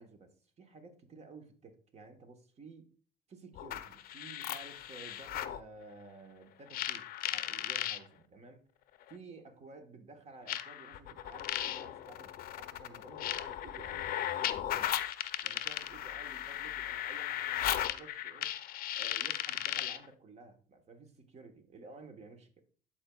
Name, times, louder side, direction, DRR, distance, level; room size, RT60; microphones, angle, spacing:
voice 1, 0.0-2.9 3.3-8.6 9.1-14.9 15.4-18.5 19.0-22.7, right 3 dB, 40° right, 1.1 m, -53 dB
sound 1, 3.6-5.6 6.7-8.0 9.1-9.2 10.5-20.1, left 12 dB, 60° left, 0.5 m, -36 dB
12.0 x 4.4 x 2.3 m
cardioid pair, 110°, 17 cm